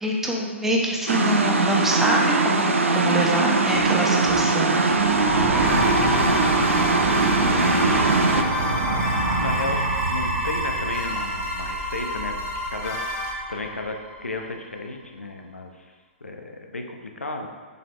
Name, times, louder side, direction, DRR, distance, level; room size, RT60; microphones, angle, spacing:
voice 1, 0.0-5.0, equal, 5° right, -2 dB, 0.9 m, -25 dB
sound 1, 1.1-8.4, right 3 dB, 75° right, 0.6 m, -21 dB
sound 2, 3.5-14.4, right 1 dB, 35° right, 1.4 m, -27 dB
voice 2, 5.5-7.3 7.6-8.5 9.4-15.9 16.2-17.5, left 2 dB, 80° left, 3 dB, 0.8 m, -34 dB
sound 3, 5.6-13.3, left 1 dB, 30° left, 1.9 m, -32 dB
6.7 x 5.2 x 3.3 m, 1.4 s
figure-of-eight pair, 120°, 7 cm